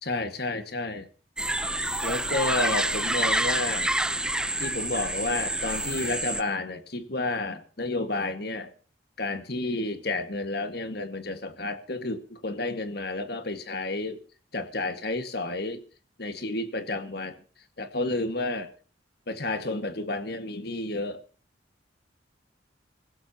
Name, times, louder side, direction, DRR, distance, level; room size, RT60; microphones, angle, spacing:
voice 1, 0.0-1.1 2.0-3.9 4.6-8.7 9.2-14.2 14.5-15.8 16.2-17.4 17.8-18.7 19.3-21.2, left 2 dB, 60° left, 1.8 m, -31 dB
sound 1, 1.4-6.4, right 1 dB, 5° right, 0.7 m, -28 dB
25.5 x 15.5 x 2.9 m
head